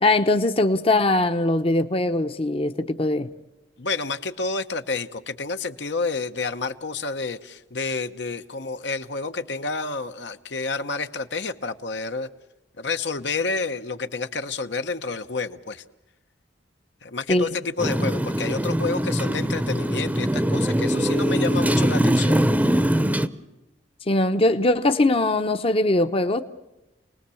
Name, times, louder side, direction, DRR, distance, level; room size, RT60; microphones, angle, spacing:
voice 1, 0.0-3.3 17.3-17.5 24.1-26.4, left 2 dB, 30° left, 0.8 m, -21 dB
voice 2, 3.8-12.3 12.8-15.8 17.0-22.5, left 4 dB, 75° left, 1.1 m, -29 dB
Motorcycle, 17.8-23.3, equal, 10° right, 0.8 m, -22 dB
29.0 x 19.5 x 7.1 m
head